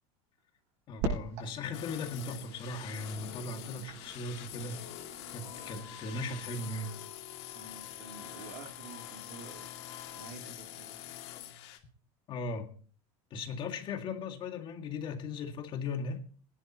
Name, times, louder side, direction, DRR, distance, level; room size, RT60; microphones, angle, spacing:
voice 1, 0.9-4.8 5.3-6.9 12.3-12.7 13.3-16.2, left 3 dB, 35° left, 2.0 m, -38 dB
sound 1, 1.0-6.7, right 3 dB, 55° right, 6.7 m, -42 dB
sound 2, 1.7-11.8, left 13 dB, 80° left, 2.5 m, -46 dB
voice 2, 3.5-3.9 7.5-9.7 10.1-11.0, right 4 dB, 80° right, 3.1 m, -49 dB
sound 3, 5.4-10.3, left 7 dB, 60° left, 4.5 m, -54 dB
23.0 x 10.5 x 3.0 m
cardioid pair, 160°, 14 cm